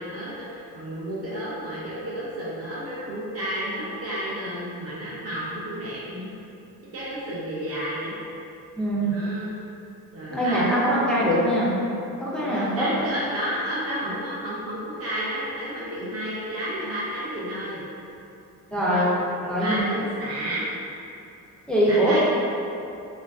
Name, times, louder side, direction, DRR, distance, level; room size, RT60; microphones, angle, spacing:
voice 1, 0.0-6.3 6.9-8.1 9.0-9.5 10.1-11.0 12.4-17.8 18.7-19.1 19.4-20.7 21.9-22.2, equal, 45° right, -8 dB, 0.5 m, -32 dB
voice 2, 10.3-11.7 12.2-13.0 18.7-19.1 19.5-20.0 21.7-22.2, equal, 5° left, -9 dB, 0.4 m, -22 dB
3.2 x 2.4 x 2.3 m, 2.7 s
cardioid pair, 170°, 34 cm